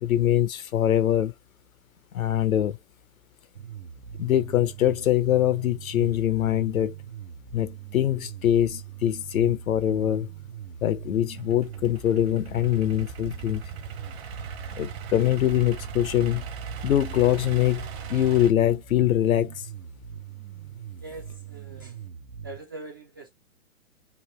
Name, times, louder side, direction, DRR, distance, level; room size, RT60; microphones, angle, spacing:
voice 1, 0.0-1.3 2.1-2.8 4.2-6.9 7.5-10.3 10.8-13.6 14.8-16.4 16.8-19.6, left 12 dB, 75° left, 0.7 m, -23 dB
sound 1, 3.6-22.6, right 9 dB, 85° right, 0.9 m, -42 dB
Idling / Accelerating revving vroom, 11.4-18.5, right 6 dB, 50° right, 1.0 m, -39 dB
voice 2, 21.0-22.0 22.4-23.3, right 2 dB, 20° right, 0.3 m, -42 dB
3.1 x 2.5 x 3.2 m
hypercardioid pair, 130°, 42 cm